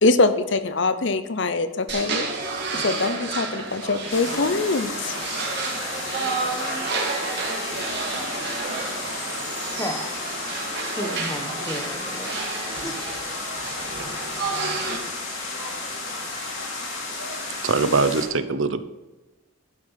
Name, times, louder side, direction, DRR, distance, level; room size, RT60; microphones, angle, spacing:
voice 1, 0.0-2.2 2.7-5.2, left 3 dB, 60° left, 11 dB, 0.7 m, -23 dB
sound 1, 1.9-15.0, right 3 dB, 55° right, 2.4 m, -30 dB
sound 2, 4.1-18.3, left 3 dB, 80° left, 3.3 m, -33 dB
voice 2, 9.7-10.1 11.0-12.5 12.8-13.0, equal, 15° left, 6 dB, 1.1 m, -33 dB
voice 3, 17.6-18.8, right 4 dB, 75° right, 12 dB, 0.7 m, -22 dB
12.0 x 6.3 x 5.6 m, 1.1 s
head